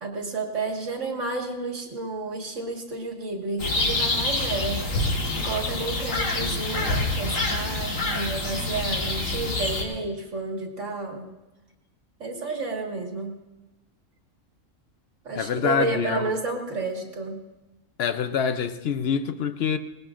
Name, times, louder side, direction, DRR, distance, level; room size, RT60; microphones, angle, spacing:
voice 1, 0.0-4.8 5.4-11.3 12.2-13.3 15.2-17.4, right 3 dB, 70° right, 2.1 m, -31 dB
sound 1, 3.6-9.8, left 2 dB, 85° left, 2.0 m, -26 dB
voice 2, 15.3-16.2 18.0-19.8, left 7 dB, 60° left, 0.8 m, -25 dB
19.5 x 18.5 x 2.5 m
omnidirectional pair, 1.3 m